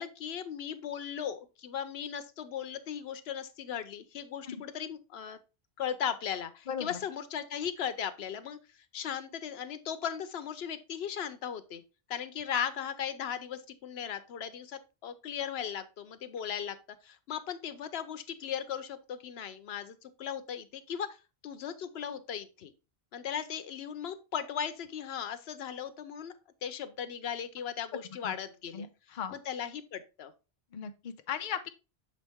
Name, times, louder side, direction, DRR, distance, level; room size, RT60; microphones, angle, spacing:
voice 1, 0.0-5.4 5.8-8.6 8.9-11.8 12.1-16.8 17.0-21.1 21.4-22.7 23.1-26.3 26.6-28.9 29.3-30.3, left 8 dB, 90° left, 0.9 m, -37 dB
voice 2, 6.7-7.0 28.2-28.3 28.7-29.4 30.7-31.7, left 8 dB, 55° left, 0.7 m, -37 dB
6.8 x 4.2 x 3.5 m
omnidirectional pair, 1.0 m